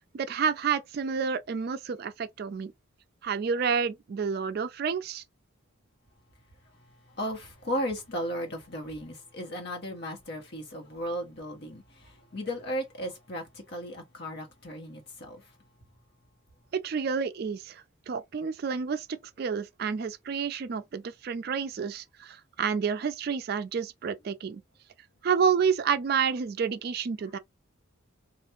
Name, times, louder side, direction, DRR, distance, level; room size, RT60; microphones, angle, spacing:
voice 1, 0.1-2.7 3.2-5.2 16.7-24.6 25.2-27.4, right 6 dB, 45° right, 0.3 m, -29 dB
voice 2, 7.2-15.4, equal, 50° left, 1.2 m, -35 dB
3.3 x 2.5 x 2.9 m
head